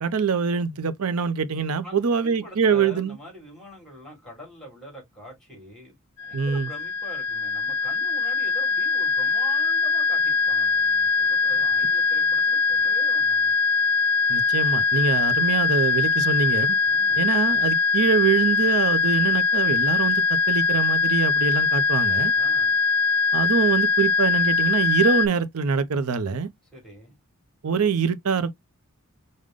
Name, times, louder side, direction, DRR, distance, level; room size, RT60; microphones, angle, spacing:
voice 1, 0.0-3.2 6.3-6.7 14.3-16.8 17.2-22.3 23.3-26.5 27.6-28.5, right 5 dB, 75° right, 0.6 m, -24 dB
voice 2, 1.8-13.5 16.8-17.2 22.3-22.7 26.7-27.1, equal, ahead, 2.5 m, -44 dB
sound 1, 6.2-25.3, left 5 dB, 80° left, 0.5 m, -22 dB
5.0 x 2.1 x 3.7 m
head